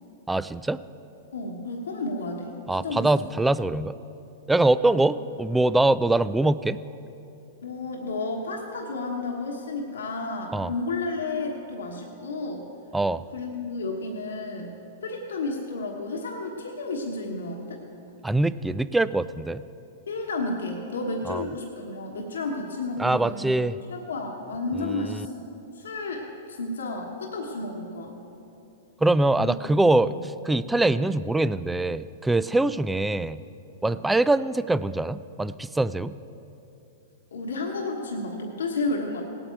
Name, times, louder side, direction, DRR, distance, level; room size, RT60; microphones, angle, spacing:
voice 1, 0.3-0.8 2.7-3.9 4.5-6.8 10.5-10.7 12.9-13.2 18.2-19.6 21.3-21.4 23.0-23.8 24.8-25.2 29.0-33.4 33.8-36.1, right 2 dB, 5° right, 16 dB, 0.3 m, -23 dB
voice 2, 1.3-3.1 4.9-5.0 7.6-12.6 13.3-14.7 15.0-17.8 20.1-23.5 23.9-25.4 25.7-28.2 29.4-29.6 30.1-30.2 32.6-32.8 33.8-34.0 37.3-39.2, left 3 dB, 90° left, 1 dB, 1.3 m, -32 dB
18.0 x 8.7 x 4.5 m, 2.8 s
hypercardioid pair, 120°, 0 cm